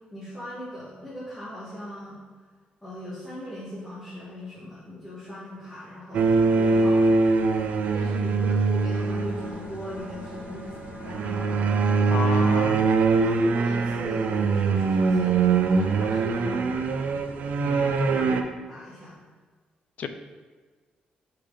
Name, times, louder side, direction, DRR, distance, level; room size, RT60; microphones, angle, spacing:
voice 1, 0.1-2.2 2.8-6.3 6.5-7.1 7.9-10.8 11.0-11.6 12.0-12.9 13.2-17.0 17.8-19.2, equal, 10° left, -11 dB, 2.0 m, -39 dB
sound 1, 6.1-9.7 11.0-18.4, right 4 dB, 60° right, 0.5 m, -23 dB
Bowed string instrument, 8.9-13.8, equal, 90° left, 2.0 m, -42 dB
voice 2, 12.1-12.8 17.6-18.1 20.0-20.1, left 6 dB, 50° left, 9 dB, 0.5 m, -32 dB
6.3 x 5.9 x 4.1 m, 1.4 s
wide cardioid pair, 165°, 3 cm